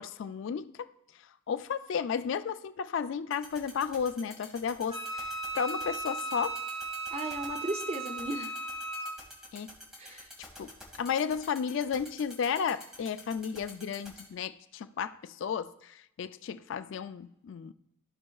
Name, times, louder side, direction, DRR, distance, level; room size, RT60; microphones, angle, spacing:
voice 1, 0.0-6.6 9.5-9.7 10.0-10.3 10.6-10.7 11.0-17.7, left 7 dB, 65° left, 0.3 m, -33 dB
sound 1, 3.3-14.2, left 1 dB, ahead, 1.6 m, -47 dB
Wind instrument woodwind instrument, 4.9-9.1, right 2 dB, 45° left, 2.1 m, -37 dB
voice 2, 7.1-8.5 10.0-10.3, right 1 dB, 30° right, 0.6 m, -35 dB
14.5 x 5.3 x 2.3 m
head